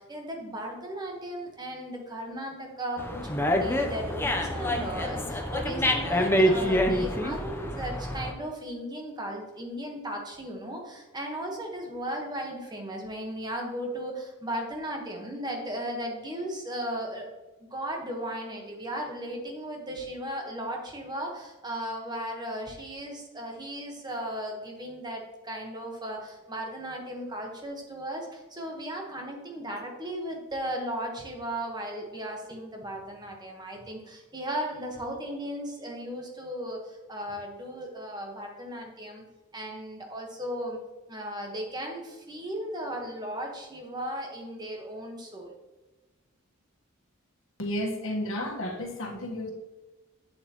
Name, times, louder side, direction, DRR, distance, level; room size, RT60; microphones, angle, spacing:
voice 1, 0.0-17.3 17.6-39.2 39.5-40.8 41.1-45.5, right 1 dB, 20° right, 1 dB, 1.3 m, -36 dB
Dog, 3.0-8.3, equal, 10° left, 0.7 m, -26 dB
voice 2, 47.6-49.5, left 1 dB, 75° left, 1 dB, 1.4 m, -32 dB
8.2 x 7.5 x 3.0 m, 1.1 s
head